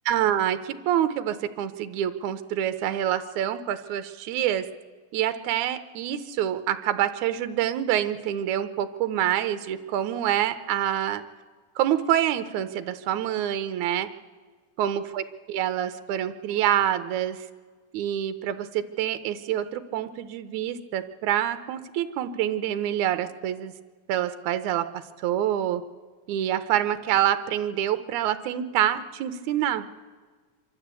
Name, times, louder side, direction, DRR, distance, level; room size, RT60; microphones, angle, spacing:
voice 1, 0.1-4.7 5.1-11.2 11.8-14.1 14.8-17.5 17.9-23.7 24.1-25.8 26.3-29.9, right 11 dB, 75° right, 11 dB, 2.2 m, -26 dB
25.5 x 13.0 x 8.3 m, 1.5 s
omnidirectional pair, 3.7 m